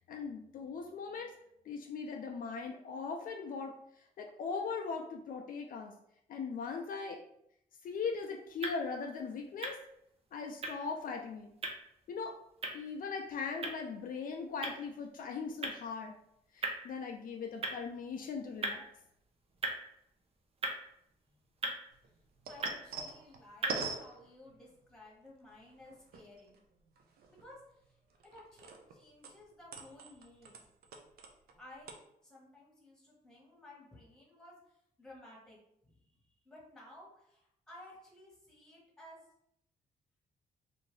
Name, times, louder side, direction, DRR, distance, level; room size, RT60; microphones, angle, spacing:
voice 1, 0.1-1.3 1.7-3.7 4.2-5.9 6.3-7.2 7.8-9.8 10.3-11.5 12.1-12.3 12.7-16.2 16.5-18.8, left 5 dB, 65° left, 2 dB, 0.4 m, -39 dB
sound 1, 7.8-23.9, right 2 dB, 40° right, 0.6 m, -43 dB
sound 2, 21.9-24.9 25.5-26.6 27.0-29.0 29.2-31.6 31.8-31.9, right 4 dB, 80° right, 0.5 m, -44 dB
voice 2, 22.5-26.6 27.3-30.6 31.6-31.9 32.2-36.0 36.2-39.2, left 1 dB, 5° left, -4 dB, 1.3 m, -56 dB
2.7 x 2.5 x 3.2 m, 0.75 s
cardioid pair, 90°, 16 cm